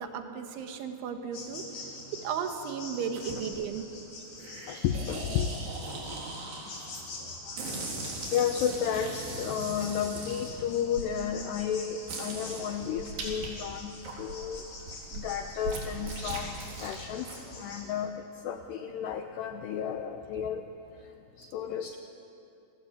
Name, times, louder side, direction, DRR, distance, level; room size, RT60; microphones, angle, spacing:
voice 1, 0.0-1.6 2.1-3.9, right 7 dB, 75° right, 5 dB, 3.7 m, -35 dB
sound 1, 1.3-17.9, left 3 dB, 40° left, 4.8 m, -46 dB
sound 2, 3.1-3.6 4.4-7.1 7.5-11.1 11.6-11.7 12.1-13.5 13.9-17.4, right 2 dB, 45° right, 5.2 m, -39 dB
voice 2, 4.7-5.6 6.9-7.3 8.3-14.7 15.1-16.5 16.8-20.6 21.4-22.0, left 8 dB, 85° left, 6 dB, 2.4 m, -32 dB
29.0 x 20.5 x 8.5 m, 2.9 s
omnidirectional pair, 6.0 m